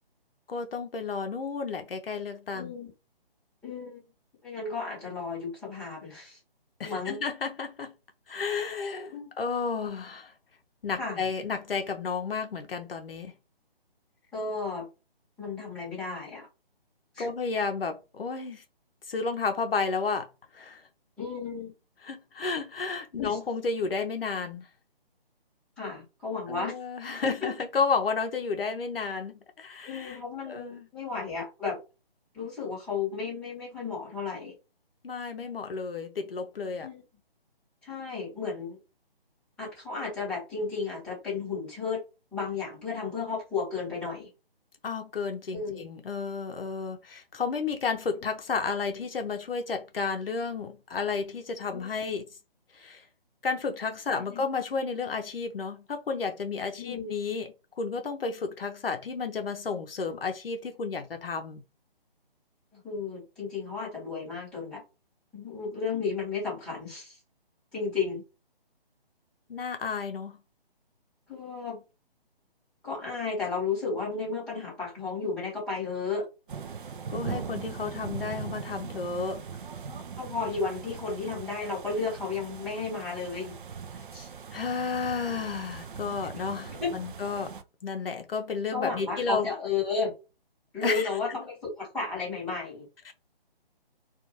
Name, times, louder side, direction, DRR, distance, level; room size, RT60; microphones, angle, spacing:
voice 1, 0.5-2.7 6.8-7.9 8.3-10.3 10.8-13.3 17.2-18.6 19.1-20.3 20.5-20.8 22.0-24.7 26.5-30.2 30.5-30.9 35.0-36.9 44.8-52.2 52.7-53.0 53.4-57.5 57.8-61.6 69.5-70.4 77.1-79.4 84.5-87.5 87.8-89.5 90.8-91.4 93.1-93.2, left 5 dB, 70° left, 0.6 m, -32 dB
voice 2, 2.5-2.9 3.6-4.0 4.4-6.4 6.8-7.2 9.1-9.3 11.0-11.2 14.3-14.9 15.4-16.5 17.1-17.3 21.2-21.7 23.2-23.4 25.8-26.8 29.8-31.8 32.3-34.5 36.8-37.0 37.8-38.8 39.6-42.0 42.3-44.3 45.5-45.9 51.7-51.9 54.1-54.4 56.8-57.1 62.7-64.8 65.3-67.2 67.7-68.2 71.3-71.8 72.8-76.3 79.9-83.6 84.1-84.3 86.7-86.9 88.7-90.1 90.7-92.9, left 4 dB, 5° left, 1.0 m, -33 dB
sound 1, 76.5-87.6, right 6 dB, 60° right, 0.4 m, -40 dB
2.5 x 2.4 x 2.8 m
figure-of-eight pair, 150°, 30 cm